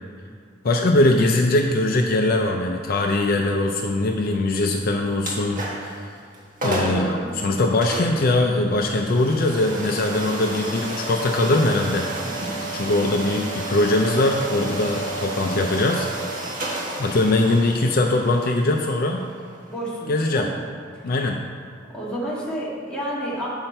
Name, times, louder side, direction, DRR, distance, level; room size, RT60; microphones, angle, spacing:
voice 1, 0.6-6.1 6.6-12.0 12.7-16.1 17.0-19.2 20.1-20.5 21.0-21.4, left 2 dB, 50° left, 2 dB, 0.5 m, -21 dB
sound 1, 5.2-6.0 6.3-6.4 6.6-7.1 7.8-20.5, right 2 dB, 45° right, 1.3 m, -32 dB
voice 2, 6.6-7.3 17.0-17.3 19.7-20.5 20.9-21.1 21.9-23.5, right 1 dB, 5° left, -7 dB, 1.7 m, -30 dB
7.9 x 5.7 x 4.4 m, 2.3 s
head